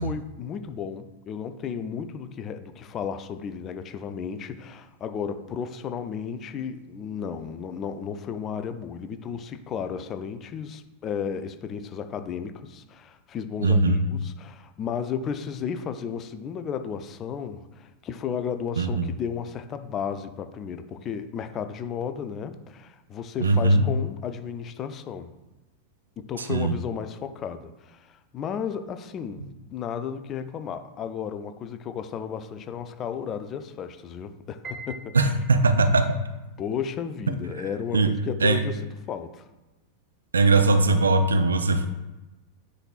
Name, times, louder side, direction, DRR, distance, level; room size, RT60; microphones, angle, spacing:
voice 1, 0.0-25.3 26.2-35.3 36.6-39.5, left 7 dB, 30° left, 9 dB, 0.5 m, -34 dB
voice 2, 13.6-14.0 18.8-19.1 23.4-23.8 26.4-26.8 35.1-36.2 37.9-38.1 38.4-38.6 40.3-41.9, right 3 dB, 75° right, 8 dB, 0.5 m, -20 dB
Piano, 34.6-35.9, right 3 dB, 20° right, 1.0 m, -42 dB
9.8 x 4.1 x 2.4 m, 1.0 s
figure-of-eight pair, 90°, 0 cm